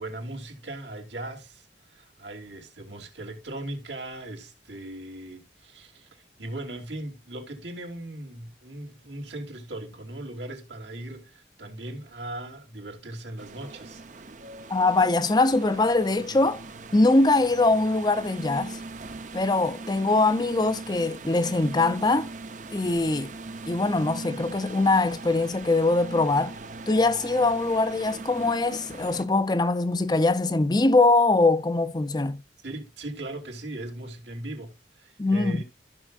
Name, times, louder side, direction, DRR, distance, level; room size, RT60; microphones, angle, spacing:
voice 1, 0.0-14.0 32.6-35.6, right 1 dB, 80° right, 2.9 m, -38 dB
sound 1, 13.4-29.2, right 3 dB, 45° right, 0.7 m, -40 dB
voice 2, 14.7-16.6 16.9-18.8 19.3-22.3 22.7-23.3 23.7-26.6 26.9-32.4 35.2-35.6, left 2 dB, 25° left, 0.5 m, -22 dB
14.5 x 6.1 x 2.4 m
head